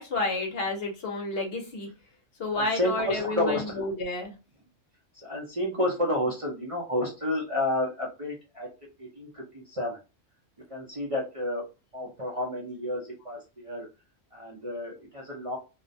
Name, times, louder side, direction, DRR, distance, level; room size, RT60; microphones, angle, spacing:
voice 1, 0.0-1.9 2.4-4.3, left 2 dB, 55° left, 2 dB, 0.8 m, -30 dB
voice 2, 2.5-3.8 5.2-8.7 9.0-10.0 10.7-11.6 11.9-13.9 14.3-15.6, left 1 dB, 40° right, -5 dB, 0.5 m, -30 dB
2.5 x 2.1 x 2.6 m, 0.30 s
omnidirectional pair, 1.3 m